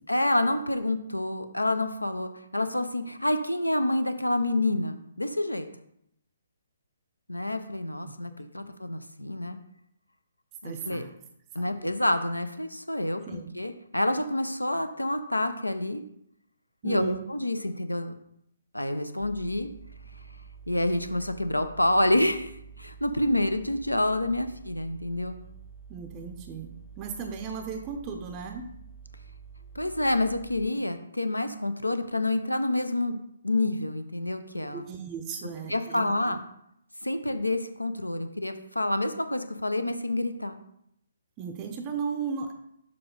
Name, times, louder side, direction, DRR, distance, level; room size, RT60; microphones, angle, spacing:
voice 1, 0.1-5.7 7.3-9.6 10.6-11.0 11.5-16.0 16.8-18.1 18.7-19.7 20.7-25.4 29.7-34.8 35.7-36.4 37.0-40.6, left 1 dB, 85° left, 9 dB, 0.6 m, -28 dB
voice 2, 10.6-11.1 11.6-11.7 13.3-13.5 16.8-17.3 25.9-28.7 34.7-36.3 41.4-42.5, right 6 dB, 20° right, 3 dB, 0.5 m, -36 dB
sound 1, 19.2-30.7, right 6 dB, 20° left, 0.9 m, -48 dB
6.8 x 3.5 x 5.2 m, 0.74 s
figure-of-eight pair, 135°, 0 cm